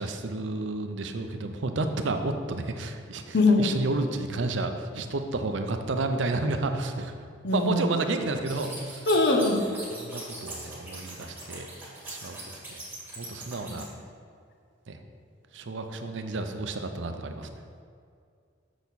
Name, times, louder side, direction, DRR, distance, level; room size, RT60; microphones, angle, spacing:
voice 1, 0.0-7.1 7.5-9.0 9.9-12.8 13.2-13.9 14.9-15.0 15.5-17.5, right 2 dB, 75° right, 7 dB, 0.6 m, -31 dB
voice 2, 3.3-3.6 7.4-7.8 9.1-9.6, left 2 dB, 60° left, 3 dB, 0.9 m, -21 dB
sound 1, 8.4-13.8, right 2 dB, 10° right, 1.9 m, -41 dB
6.8 x 6.5 x 4.1 m, 2.3 s
head